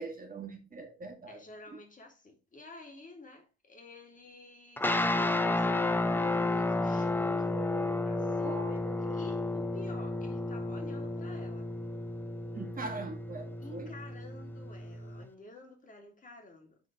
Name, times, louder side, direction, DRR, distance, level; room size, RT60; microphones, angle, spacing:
voice 1, 0.0-1.4 8.3-8.7 12.5-13.9, right 3 dB, 25° right, 1.8 m, -41 dB
voice 2, 1.3-7.6 8.0-11.7 13.6-16.8, left 3 dB, 25° left, 2.3 m, -51 dB
sound 1, 4.8-15.3, left 2 dB, 5° left, 0.6 m, -32 dB
sound 2, 6.9-14.0, right 18 dB, 65° right, 0.7 m, -50 dB
9.2 x 3.9 x 3.6 m
figure-of-eight pair, 55°, 32 cm